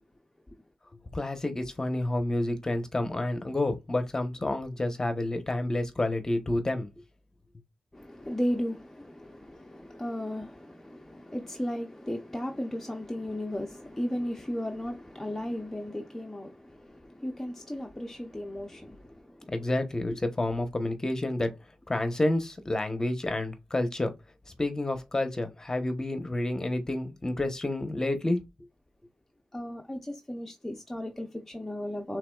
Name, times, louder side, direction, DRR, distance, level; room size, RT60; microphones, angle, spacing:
voice 1, 1.1-6.9 19.5-21.5 21.9-24.1 24.6-28.4, left 1 dB, 25° left, 1.0 m, -29 dB
voice 2, 7.9-19.5 20.1-20.2 29.5-32.2, left 1 dB, 10° left, 0.7 m, -35 dB
5.8 x 3.7 x 2.4 m
wide cardioid pair, 95°, 2 cm